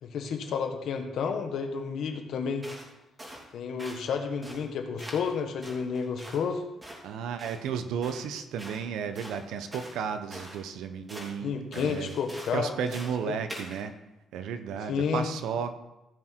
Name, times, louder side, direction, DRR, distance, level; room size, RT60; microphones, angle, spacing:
voice 1, 0.0-2.7 3.5-6.6 11.4-13.3 14.9-15.3, left 6 dB, 70° left, 5 dB, 1.5 m, -31 dB
footsteps-wet-sand, 2.6-2.9 3.2-3.5 3.8-4.1 4.4-4.7 5.0-5.3 5.6-6.4 6.8-7.0 7.4-7.6 8.0-8.3 8.6-8.8 9.2-10.0 10.3-10.6 11.1-11.3 11.7-12.6 12.9-13.2 13.5-13.8, equal, 20° right, 3.2 m, -44 dB
voice 2, 7.0-12.1 12.5-13.9 14.3-15.8, right 7 dB, 85° right, 9 dB, 0.9 m, -33 dB
15.5 x 6.2 x 4.6 m, 0.97 s
cardioid pair, 90°, 0 cm